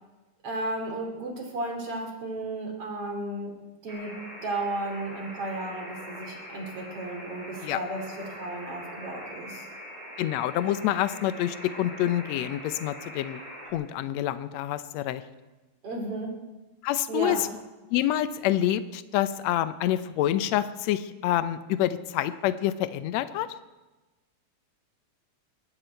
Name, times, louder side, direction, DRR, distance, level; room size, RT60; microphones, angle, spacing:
voice 1, 0.4-3.5 3.8-4.2 4.4-9.7 15.8-16.4 17.1-17.5, right 2 dB, 55° right, 2 dB, 3.6 m, -34 dB
Alarm, 3.9-13.7, equal, 10° right, 3.8 m, -42 dB
voice 2, 10.2-13.4 13.7-15.2 16.8-17.5 17.9-23.5, left 12 dB, 75° left, 13 dB, 1.9 m, -27 dB
21.0 x 15.0 x 4.5 m, 1.1 s
omnidirectional pair, 3.3 m